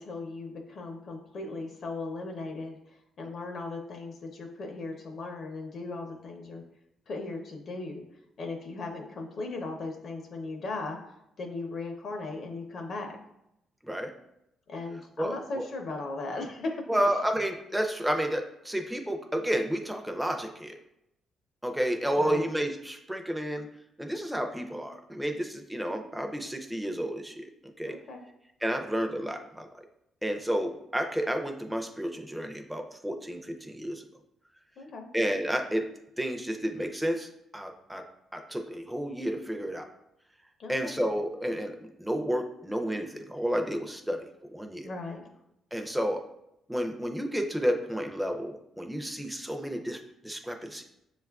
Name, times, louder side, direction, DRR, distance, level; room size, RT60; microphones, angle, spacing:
voice 1, 0.0-2.8 3.2-6.6 7.1-8.0 8.4-11.0 11.4-13.1 14.7-16.9 22.2-22.4 27.8-28.2 34.8-35.1 40.6-40.9 44.8-45.2, left 3 dB, 55° left, 2 dB, 0.6 m, -37 dB
voice 2, 15.2-15.6 16.9-20.7 21.6-23.7 24.0-27.5 27.8-28.0 28.6-29.7 30.2-34.0 35.1-35.9 36.2-37.3 37.5-38.0 38.3-39.9 40.7-41.7 42.0-44.3 44.5-44.9 45.7-46.2 46.7-50.9, equal, 5° right, 4 dB, 0.5 m, -31 dB
6.9 x 2.4 x 2.3 m, 0.83 s
cardioid pair, 90°, 0 cm